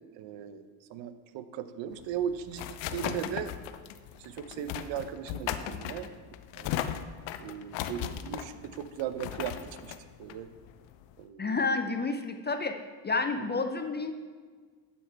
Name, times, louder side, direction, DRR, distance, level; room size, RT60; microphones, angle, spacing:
voice 1, 0.2-0.6 0.9-3.5 4.2-6.1 6.6-6.7 7.4-9.5 9.8-9.9 10.2-10.5 11.2-11.5 13.4-13.5, right 9 dB, 65° right, 12 dB, 0.8 m, -37 dB
sound 1, 1.9-11.2, left 10 dB, 65° left, 0.7 m, -37 dB
voice 2, 11.4-12.7 13.0-14.1, left 3 dB, 20° left, 6 dB, 0.6 m, -30 dB
12.0 x 5.4 x 4.4 m, 1.5 s
hypercardioid pair, 70°, 48 cm